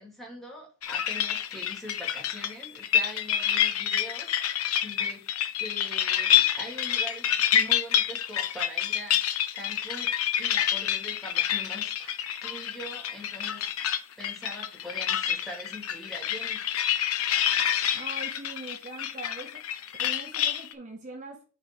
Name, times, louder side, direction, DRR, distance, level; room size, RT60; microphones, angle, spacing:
voice 1, 0.0-5.2 5.6-10.1 10.4-12.1 12.4-13.9 14.2-16.6, equal, ahead, 2.5 m, -43 dB
sound 1, 0.8-20.7, left 10 dB, 85° left, 0.7 m, -28 dB
voice 2, 17.9-19.6 20.0-21.4, right 2 dB, 35° right, 0.8 m, -42 dB
5.3 x 4.0 x 6.0 m
head